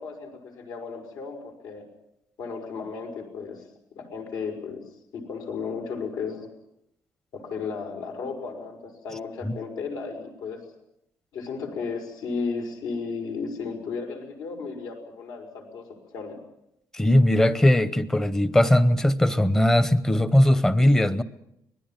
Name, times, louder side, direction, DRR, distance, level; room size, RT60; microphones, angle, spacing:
voice 1, 0.0-1.9 2.4-3.6 3.9-4.8 5.1-6.5 7.3-10.6 11.3-15.9 16.1-16.4, left 5 dB, 80° left, 3 dB, 5.8 m, -34 dB
voice 2, 16.9-21.2, left 1 dB, 10° left, 14 dB, 0.8 m, -19 dB
25.0 x 20.0 x 7.4 m, 0.82 s
cardioid pair, 175°, 6 cm